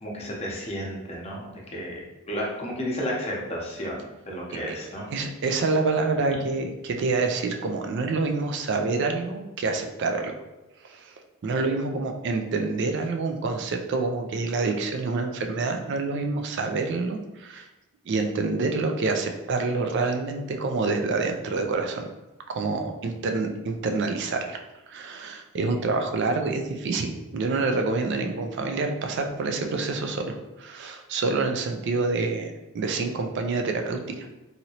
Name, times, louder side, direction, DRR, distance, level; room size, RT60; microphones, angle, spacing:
voice 1, 0.0-4.0 4.3-5.0, equal, 30° left, -3 dB, 0.7 m, -32 dB
voice 2, 5.1-10.3 10.8-11.1 11.4-17.7 18.1-22.1 22.5-24.6 24.9-34.3, right 3 dB, 55° right, 4 dB, 0.3 m, -27 dB
2.9 x 2.7 x 2.8 m, 1.0 s
head